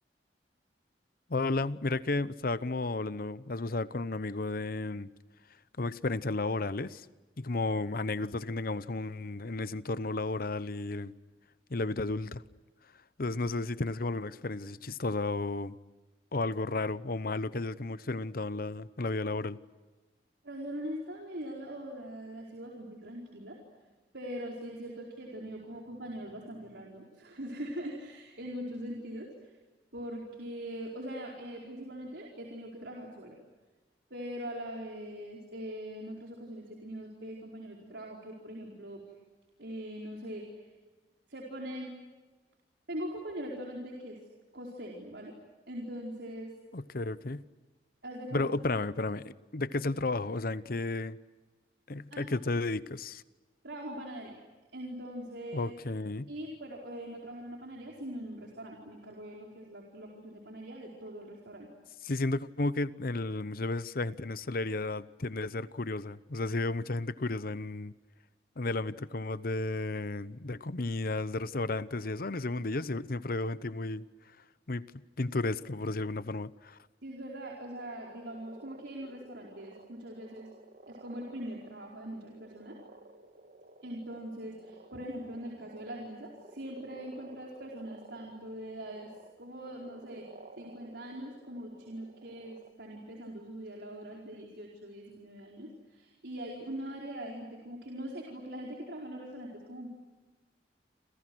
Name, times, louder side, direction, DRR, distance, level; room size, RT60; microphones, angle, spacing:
voice 1, 1.3-5.1 5.8-7.1 7.4-11.1 11.7-12.4 13.2-15.8 16.3-19.6 46.7-47.5 48.3-51.2 51.9-53.2 55.5-56.3 62.0-67.9 68.6-74.0 74.7-74.8 75.2-76.8, left 2 dB, 55° left, 0.9 m, -33 dB
voice 2, 20.4-23.6 24.1-29.5 29.9-33.3 34.1-39.0 39.6-40.7 41.3-41.9 42.9-44.2 44.5-45.3 45.7-46.5 48.0-48.4 52.1-52.3 53.6-54.4 54.7-55.7 56.3-61.7 77.0-80.5 80.9-82.8 83.8-89.1 89.4-90.3 90.6-99.9, equal, 80° right, 4.7 m, -42 dB
sound 1, 77.6-92.7, right 2 dB, 55° right, 2.1 m, -54 dB
29.0 x 28.0 x 6.3 m
head